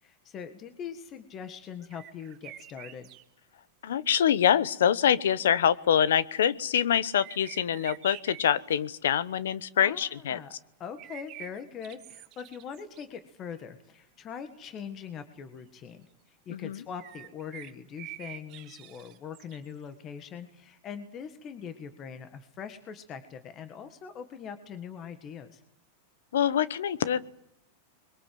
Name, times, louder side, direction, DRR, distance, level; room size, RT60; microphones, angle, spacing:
voice 1, 0.0-3.1 9.7-25.6, left 7 dB, 30° left, 10 dB, 1.7 m, -42 dB
sound 1, 1.8-3.2 7.0-8.4 11.0-13.1 13.6-13.7 14.3-14.4 14.6-14.7 17.0-19.7, right 14 dB, 40° right, 1.7 m, -46 dB
voice 2, 3.8-10.4 16.5-16.8 26.3-27.3, left 9 dB, 90° left, 18 dB, 1.0 m, -25 dB
24.5 x 22.0 x 7.8 m, 0.80 s
supercardioid pair, 135°, 0 cm